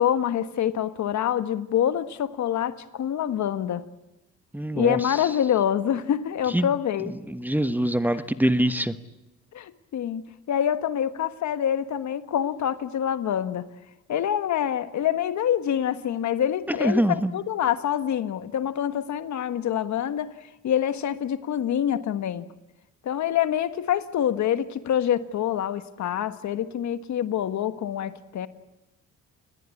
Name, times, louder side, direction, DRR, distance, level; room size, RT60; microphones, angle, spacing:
voice 1, 0.0-3.8 4.7-7.2 8.1-8.2 9.5-10.2 10.5-13.7 14.1-22.5 23.0-28.5, left 10 dB, 65° left, 12 dB, 1.5 m, -26 dB
voice 2, 4.5-5.0 6.5-6.7 7.3-8.9 16.8-17.3, right 1 dB, 5° right, 12 dB, 1.3 m, -23 dB
29.0 x 20.0 x 8.5 m, 0.97 s
cardioid pair, 90°, 30 cm